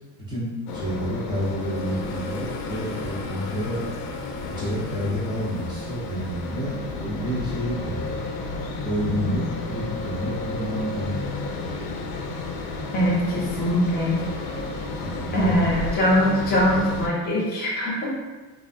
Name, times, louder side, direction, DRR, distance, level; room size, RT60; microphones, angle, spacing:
voice 1, 0.3-3.9 4.4-8.2 8.8-11.7 15.0-15.5, equal, 10° right, -8 dB, 0.7 m, -29 dB
sound 1, 0.7-17.1, left 3 dB, 90° left, 0.5 m, -32 dB
voice 2, 12.9-14.1 15.3-18.2, equal, 25° left, -5 dB, 0.6 m, -22 dB
3.1 x 2.3 x 2.5 m, 1.3 s
cardioid pair, 150°, 41 cm